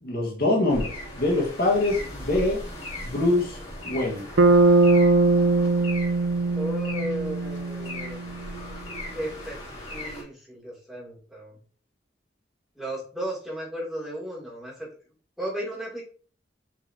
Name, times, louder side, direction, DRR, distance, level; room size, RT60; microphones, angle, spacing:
voice 1, 0.0-2.6 3.0-3.6 3.8-4.3, left 2 dB, 60° left, -2 dB, 1.8 m, -24 dB
sound 1, 0.7-10.2, left 1 dB, 35° left, 2.9 m, -38 dB
Bass guitar, 4.4-8.5, right 3 dB, 85° right, 0.6 m, -21 dB
voice 2, 6.5-8.2 9.1-11.6 12.7-14.9 15.4-16.0, equal, ahead, -6 dB, 3.0 m, -35 dB
6.0 x 5.5 x 2.9 m, 0.42 s
head